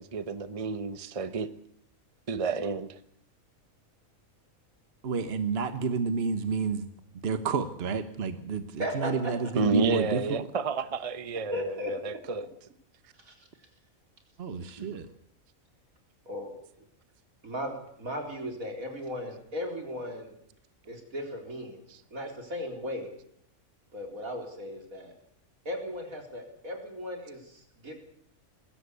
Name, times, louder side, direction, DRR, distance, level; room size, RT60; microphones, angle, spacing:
voice 1, 0.0-1.5 2.3-3.0 9.5-12.4 14.8-15.0 21.9-22.0, right 4 dB, 30° right, 12 dB, 0.9 m, -31 dB
voice 2, 5.0-6.9 7.2-10.2 14.4-15.1, right 5 dB, 50° right, 10 dB, 1.4 m, -30 dB
voice 3, 8.8-9.3 11.5-12.2 13.2-13.3 16.3-16.5 17.4-17.7 18.0-20.3 20.9-21.8 22.1-23.1 23.9-25.1 25.7-28.0, equal, 85° right, 3 dB, 4.5 m, -36 dB
20.5 x 16.0 x 8.3 m, 0.67 s
omnidirectional pair, 1.4 m